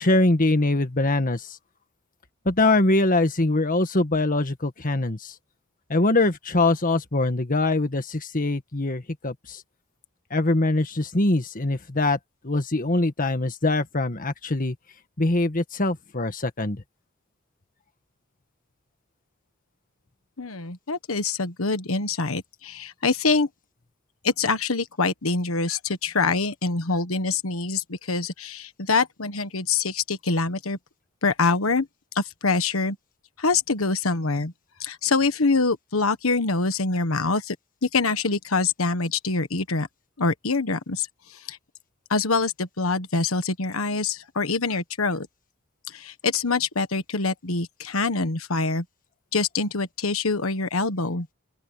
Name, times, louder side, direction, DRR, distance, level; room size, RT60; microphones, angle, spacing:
voice 1, 0.0-1.6 2.4-5.3 5.9-9.6 10.3-12.2 12.4-14.7 15.2-16.8, left 2 dB, 40° left, 1.7 m, -23 dB
voice 2, 20.4-23.5 24.2-30.8 31.2-31.9 32.1-33.0 33.4-34.5 34.8-37.5 37.8-39.9 40.2-41.1 41.3-41.6 42.1-45.3 45.9-48.8 49.3-51.3, left 3 dB, 85° left, 1.5 m, -25 dB
open air
head